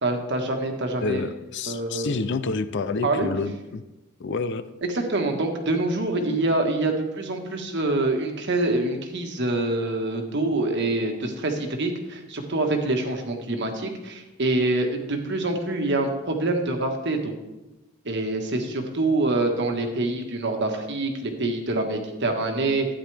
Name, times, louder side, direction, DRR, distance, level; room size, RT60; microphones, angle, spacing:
voice 1, 0.0-1.2 1.7-2.2 3.0-3.3 4.8-17.3 18.0-22.9, right 2 dB, 60° right, 4 dB, 1.5 m, -25 dB
voice 2, 1.0-3.8 4.2-4.6, left 3 dB, 60° left, 12 dB, 0.5 m, -28 dB
13.0 x 9.9 x 3.4 m, 1.0 s
head